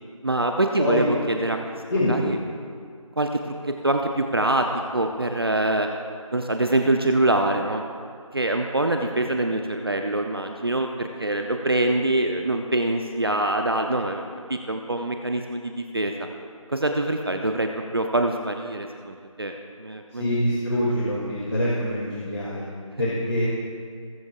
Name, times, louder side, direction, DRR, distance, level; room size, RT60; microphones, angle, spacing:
voice 1, 0.2-1.6 2.1-2.4 3.2-4.7 4.9-5.9 6.3-7.9 8.3-14.2 14.5-16.1 16.7-20.2, right 2 dB, 45° right, 4 dB, 0.7 m, -24 dB
voice 2, 0.8-1.1 1.9-2.2 20.2-22.6 23.0-23.5, left 1 dB, 55° left, -7 dB, 2.5 m, -24 dB
20.0 x 8.0 x 2.5 m, 2.2 s
figure-of-eight pair, 170°, 17 cm